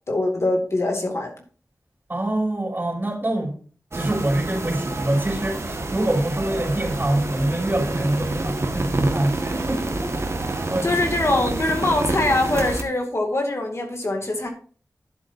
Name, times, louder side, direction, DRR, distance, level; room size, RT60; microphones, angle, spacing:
voice 1, 0.1-1.3 10.8-14.5, left 2 dB, 50° left, 2 dB, 2.3 m, -23 dB
voice 2, 2.1-3.6 3.9-10.1 10.6-10.9, right 1 dB, 35° right, -3 dB, 4.9 m, -25 dB
sound 1, 3.9-12.8, right 2 dB, 50° right, 1.6 m, -28 dB
11.5 x 7.7 x 2.7 m, 0.41 s
wide cardioid pair, 60°, 6 cm